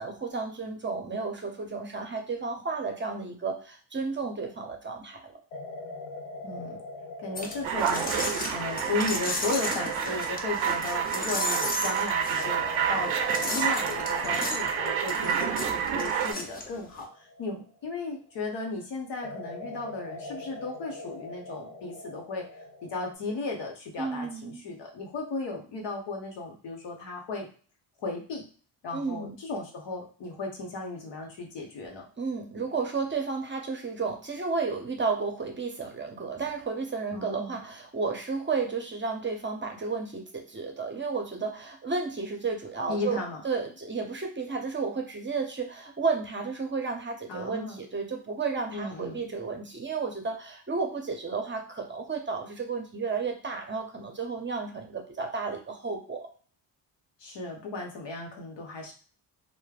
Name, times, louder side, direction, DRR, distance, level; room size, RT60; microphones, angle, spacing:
voice 1, 0.0-5.3 24.0-24.6 28.9-29.4 32.2-56.3, right 4 dB, 25° right, 3 dB, 0.7 m, -32 dB
sound 1, 4.1-4.6 5.5-11.4 12.4-18.4 19.2-23.1, left 2 dB, 85° left, 0.7 m, -43 dB
voice 2, 6.4-6.8 7.2-8.2 8.5-22.5 22.8-27.5 28.0-28.4 28.8-32.1 37.1-37.6 42.9-43.4 47.3-47.8 48.7-49.3 57.2-58.9, left 3 dB, 65° left, 1 dB, 1.0 m, -35 dB
sound 2, 7.3-17.0, left 2 dB, 20° left, 0.6 m, -35 dB
sound 3, 7.6-16.3, right 8 dB, 90° right, 0.5 m, -29 dB
3.1 x 2.2 x 2.4 m, 0.40 s
supercardioid pair, 70°, 45 cm